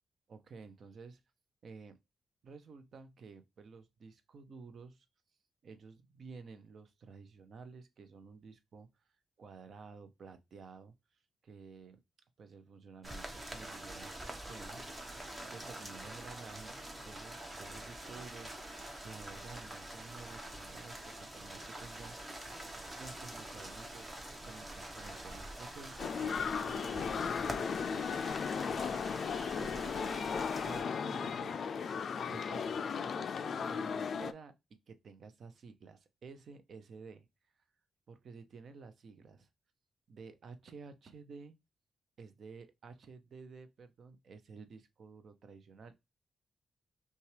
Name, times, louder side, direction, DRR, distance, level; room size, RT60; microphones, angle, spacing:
voice 1, 0.3-1.2 1.6-2.0 2.4-5.1 5.6-8.9 9.4-10.9 11.4-12.0 12.4-16.8 17.1-18.6 19.0-22.5 23.0-24.1 24.4-28.1 28.7-30.2 30.4-31.6 32.3-34.5 34.9-37.3 38.1-39.5 40.1-41.5 42.2-46.0, right 4 dB, 60° right, 0.5 m, -52 dB
sound 1, 13.0-30.8, right 1 dB, 20° right, 0.9 m, -46 dB
sound 2, 26.0-34.3, left 6 dB, 55° left, 0.3 m, -36 dB
5.6 x 2.3 x 3.2 m
cardioid pair, 115°, 0 cm